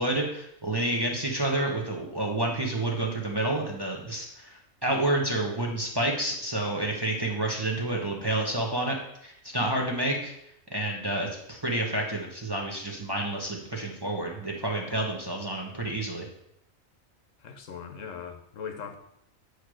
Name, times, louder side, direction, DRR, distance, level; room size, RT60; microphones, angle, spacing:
voice 1, 0.0-9.0 9.2-10.3 10.7-16.3, right 1 dB, 20° right, -1 dB, 1.0 m, -29 dB
voice 2, 17.4-19.0, left 7 dB, 70° left, 6 dB, 1.1 m, -39 dB
8.0 x 3.3 x 6.2 m, 0.75 s
omnidirectional pair, 1.4 m